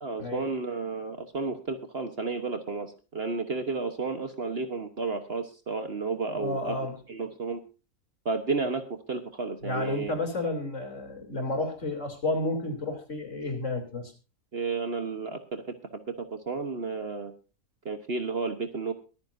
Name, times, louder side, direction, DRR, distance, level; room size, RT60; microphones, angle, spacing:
voice 1, 0.0-6.8 7.1-7.6 8.2-8.8 9.1-10.1 14.5-15.6 15.9-17.3 17.8-18.9, right 4 dB, 45° right, 8 dB, 1.3 m, -32 dB
voice 2, 6.3-7.0 9.6-14.1, left 2 dB, 50° left, 4 dB, 3.6 m, -31 dB
23.5 x 9.8 x 2.7 m, 0.32 s
omnidirectional pair, 1.6 m